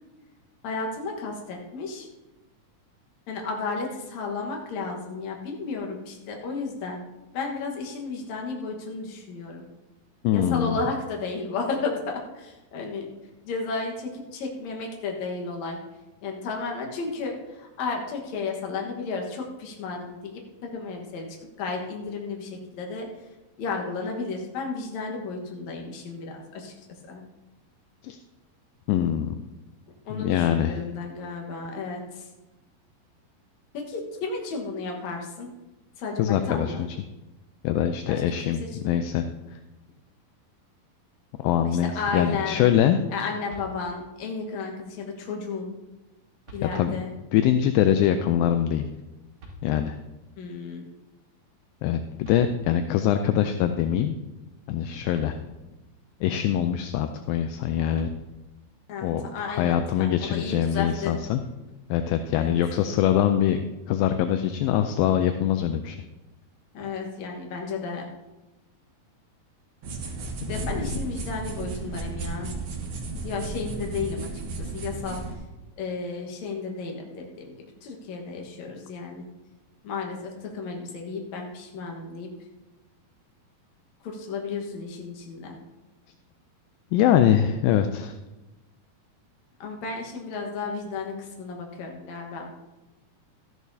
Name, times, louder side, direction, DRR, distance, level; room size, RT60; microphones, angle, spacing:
voice 1, 0.6-2.1 3.3-7.0 7.3-9.7 10.3-13.1 13.4-15.8 16.2-21.3 21.6-23.1 23.6-26.7 27.1-27.2 30.1-32.3 33.7-35.5 36.0-36.8 38.1-38.7 41.6-42.7 43.1-45.7 46.5-47.1 50.4-50.9 58.9-61.1 62.3-62.5 66.7-68.1 70.5-72.5 73.2-74.3 74.6-75.2 75.8-77.5 77.8-79.3 79.8-82.3 84.0-85.6 89.6-92.5, left 4 dB, 60° left, 1 dB, 2.3 m, -33 dB
voice 2, 10.2-10.8 28.0-28.2 28.9-29.4 30.1-30.8 36.2-37.0 37.6-38.6 38.8-39.3 41.4-43.0 46.6-47.0 47.3-48.9 49.6-50.0 51.8-54.2 54.7-55.4 56.2-58.1 59.0-61.4 61.9-63.6 63.9-66.0 70.6-70.7 86.9-88.1, left 10 dB, 80° left, 8 dB, 2.2 m, -23 dB
sound 1, 43.5-44.2 45.8-45.9 46.4-47.2 49.4-50.2 51.9-52.0 52.2-53.1 54.8-54.9 55.1-55.9 57.9-58.8 60.7-61.5, equal, 55° right, 3.2 m, -46 dB
sound 2, 69.8-75.3, right 3 dB, 85° right, 1.2 m, -34 dB
13.0 x 10.5 x 2.7 m, 1.0 s
omnidirectional pair, 4.3 m